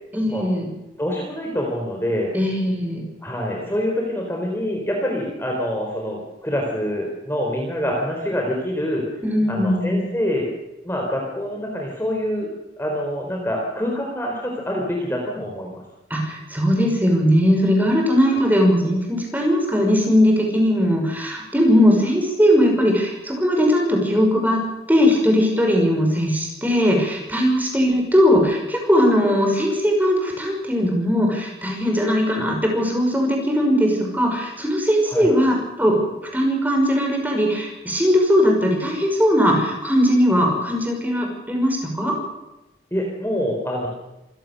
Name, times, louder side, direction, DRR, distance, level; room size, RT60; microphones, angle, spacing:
voice 1, 0.1-0.7 2.3-3.0 9.2-10.0 16.1-24.6 24.9-42.1, equal, 10° right, 1 dB, 5.9 m, -19 dB
voice 2, 1.0-2.3 3.2-9.0 9.5-10.5 10.8-12.5 12.8-15.8 18.3-18.4 35.1-35.3 42.9-43.9, equal, 15° left, -1 dB, 4.1 m, -26 dB
27.0 x 16.5 x 6.8 m, 0.97 s
head